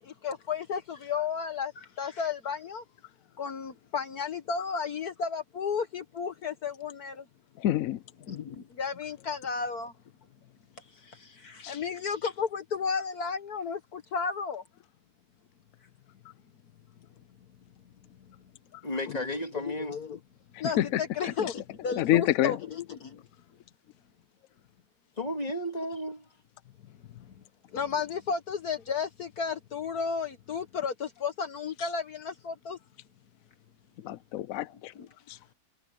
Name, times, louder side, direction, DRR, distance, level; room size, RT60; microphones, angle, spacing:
voice 1, 0.0-2.8 3.4-7.3 8.3-9.9 10.8-14.6 19.1-19.3 19.5-20.2 20.6-23.2 26.9-27.4 27.7-32.8 34.9-35.1, left 6 dB, 55° left, 1.5 m, -33 dB
voice 2, 7.6-8.0 11.6-11.8 20.8-20.9 22.0-22.6 34.0-34.9 35.3-35.4, left 13 dB, 85° left, 0.7 m, -26 dB
voice 3, 18.8-19.9 25.2-26.2, left 1 dB, 20° left, 2.4 m, -33 dB
omnidirectional pair, 2.1 m